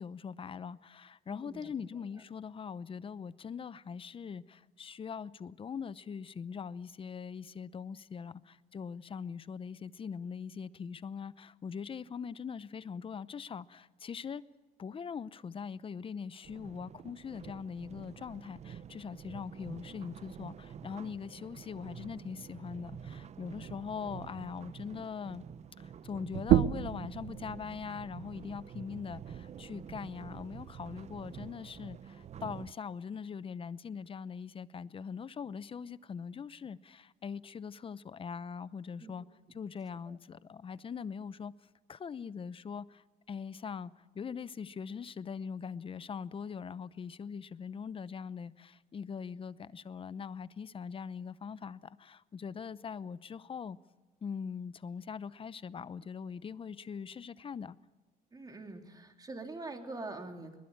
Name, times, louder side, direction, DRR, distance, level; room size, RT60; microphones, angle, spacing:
voice 1, 0.0-14.4 14.8-25.4 25.8-39.3 39.5-41.5 41.9-53.8 54.2-57.8, left 6 dB, 30° left, 0.8 m, -42 dB
voice 2, 1.3-1.7 39.0-39.1 40.1-40.2 58.3-60.6, right 2 dB, 20° right, 3.3 m, -44 dB
sound 1, 16.4-32.7, right 8 dB, 40° right, 0.8 m, -48 dB
sound 2, 26.3-31.5, right 12 dB, 75° right, 1.0 m, -33 dB
22.0 x 21.0 x 8.8 m
cardioid pair, 110°, 17 cm